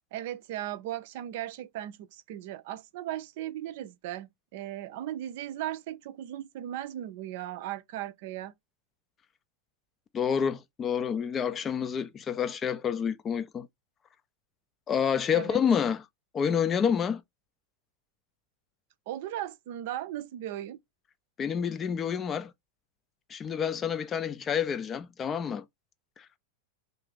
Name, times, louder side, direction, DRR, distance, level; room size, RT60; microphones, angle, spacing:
voice 1, 0.1-8.5 15.3-15.6 19.1-20.8, right 12 dB, 50° right, 0.4 m, -37 dB
voice 2, 10.1-13.7 14.9-16.0 16.3-17.2 21.4-22.5 23.3-25.6, left 7 dB, 25° left, 0.4 m, -28 dB
2.6 x 2.4 x 3.6 m
figure-of-eight pair, 90°, 0 cm